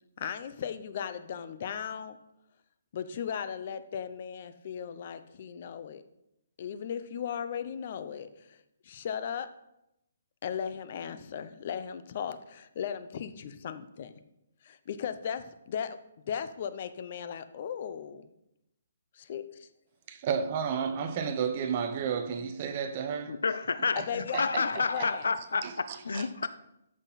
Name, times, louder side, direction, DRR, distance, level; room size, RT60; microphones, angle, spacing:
voice 1, 0.2-2.2 2.9-6.0 6.6-8.6 8.8-9.5 10.4-14.1 14.6-16.0 16.2-18.3 19.1-19.7 24.0-25.3, left 8 dB, 35° left, 0.7 m, -37 dB
voice 2, 20.1-23.4 24.0-24.1 24.3-25.1 25.6-26.3, right 7 dB, 30° right, 0.8 m, -32 dB
voice 3, 23.3-26.5, left 4 dB, 90° left, 0.6 m, -30 dB
14.0 x 6.0 x 4.1 m
hypercardioid pair, 170°, 0 cm